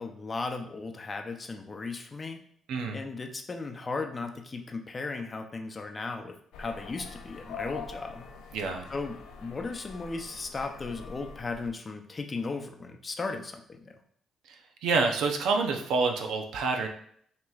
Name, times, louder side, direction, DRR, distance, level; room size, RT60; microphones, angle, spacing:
voice 1, 0.0-2.4 2.9-8.3 8.9-14.0, left 3 dB, 30° left, 4 dB, 0.6 m, -36 dB
voice 2, 2.7-3.0 8.5-8.9 14.5-14.6 14.8-16.9, right 4 dB, 85° right, 4 dB, 0.6 m, -27 dB
sound 1, 6.5-11.7, left 5 dB, 90° left, 0.5 m, -44 dB
5.8 x 2.9 x 2.4 m, 0.64 s
cardioid pair, 90°, 0 cm